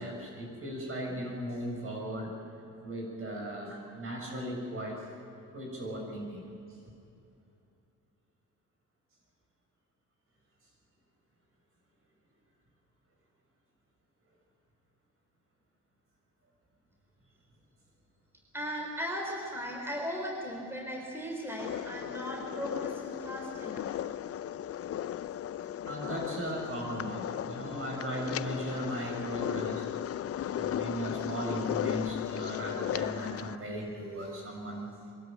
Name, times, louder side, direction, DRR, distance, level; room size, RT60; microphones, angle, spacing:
voice 1, 0.0-2.3 2.8-5.0 5.5-6.5 25.8-29.9 30.5-34.9, equal, 45° right, 0 dB, 6.8 m, -37 dB
voice 2, 18.5-23.9, equal, 10° right, 0 dB, 3.9 m, -37 dB
sound 1, 21.6-33.6, left 11 dB, 50° left, 0.6 m, -36 dB
23.5 x 13.0 x 9.1 m, 2.8 s
cardioid pair, 90°, 30 cm